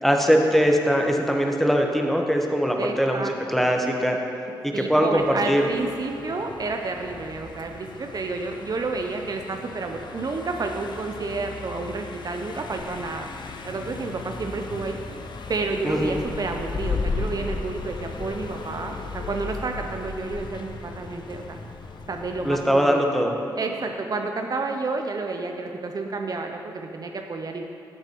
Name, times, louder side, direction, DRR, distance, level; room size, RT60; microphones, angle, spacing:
voice 1, 0.0-3.2 3.5-4.2 4.6-5.7 15.8-16.1 22.4-23.3, equal, ahead, 2 dB, 1.2 m, -21 dB
voice 2, 2.8-3.7 4.7-13.3 13.6-15.0 15.5-21.6 22.1-23.0 23.6-27.6, right 3 dB, 45° right, 4 dB, 0.6 m, -30 dB
Car passing by, 5.2-22.6, left 4 dB, 60° left, 0.7 m, -36 dB
11.0 x 7.7 x 3.0 m, 2.6 s
supercardioid pair, 45°, 9 cm